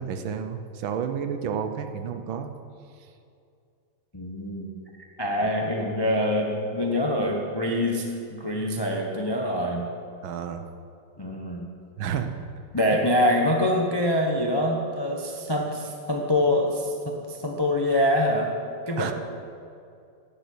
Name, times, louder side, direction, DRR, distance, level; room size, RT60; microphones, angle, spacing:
voice 1, 0.0-2.5 5.4-5.5 10.2-10.6 12.0-12.3 19.0-19.1, right 7 dB, 70° right, 7 dB, 1.5 m, -31 dB
voice 2, 4.1-4.7 5.2-9.9 11.2-11.6 12.7-18.5 18.9-19.1, left 1 dB, 25° left, 0 dB, 0.5 m, -25 dB
11.0 x 7.2 x 8.5 m, 2.4 s
omnidirectional pair, 2.4 m